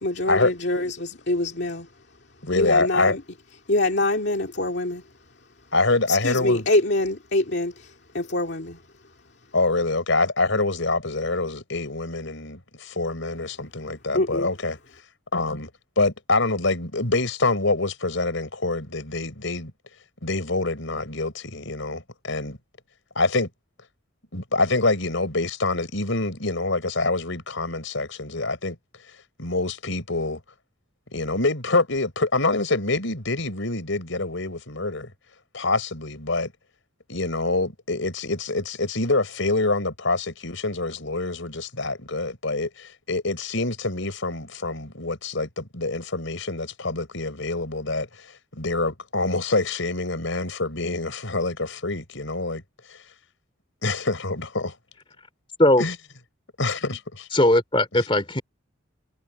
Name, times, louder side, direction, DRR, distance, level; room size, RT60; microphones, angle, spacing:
voice 1, 0.0-1.9 2.5-3.2 3.7-5.0 6.1-8.8 14.1-14.5, left 2 dB, 55° left, 2.3 m, -25 dB
voice 2, 2.4-3.2 5.7-6.7 9.5-14.8 15.3-15.7 16.0-19.7 20.2-22.6 23.1-23.5 24.3-28.8 29.4-30.4 31.1-35.1 35.5-36.5 37.1-48.3 48.5-52.6 52.9-53.0 53.8-54.8 55.8-55.9 56.6-57.3, left 2 dB, 70° left, 4.5 m, -26 dB
voice 3, 57.3-58.4, left 1 dB, 25° left, 3.0 m, -19 dB
head